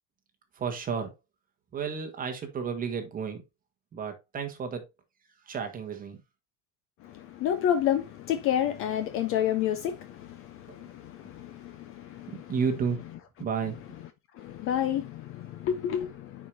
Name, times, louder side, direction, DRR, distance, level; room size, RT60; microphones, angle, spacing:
voice 1, 0.5-1.1 1.7-3.4 3.9-4.9 5.4-6.2 10.7-10.8 12.3-13.0 13.4-13.8, right 6 dB, 20° right, 1.4 m, -32 dB
voice 2, 7.0-12.5 14.3-16.5, left 10 dB, 35° left, 0.5 m, -30 dB
9.4 x 5.0 x 2.6 m
cardioid pair, 175°, 40 cm